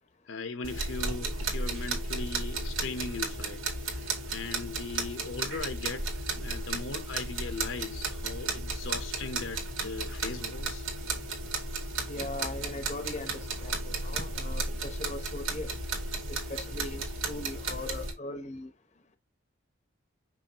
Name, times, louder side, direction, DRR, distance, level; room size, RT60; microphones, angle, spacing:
voice 1, 0.3-10.9, left 4 dB, 75° left, 0.8 m, -39 dB
sound 1, 0.6-18.1, right 3 dB, 85° right, 2.1 m, -34 dB
voice 2, 12.1-15.8 16.3-18.7, left 2 dB, 35° left, 0.8 m, -39 dB
6.1 x 5.6 x 2.9 m
head